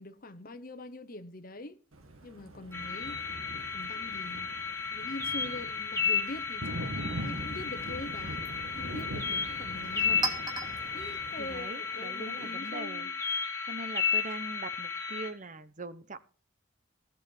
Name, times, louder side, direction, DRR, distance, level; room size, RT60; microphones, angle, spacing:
voice 1, 0.0-1.8 2.2-3.2 3.7-4.5 4.9-10.4 10.9-13.2, left 2 dB, 45° left, 1.0 m, -43 dB
Thunder, 1.9-11.6, right 1 dB, 85° right, 2.1 m, -42 dB
sound 1, 2.7-15.3, left 6 dB, 15° left, 2.4 m, -34 dB
Chink clink, 7.3-12.8, right 3 dB, 20° right, 2.6 m, -42 dB
voice 2, 11.4-13.1 13.7-16.2, right 3 dB, 35° right, 1.0 m, -42 dB
16.5 x 6.3 x 7.1 m
head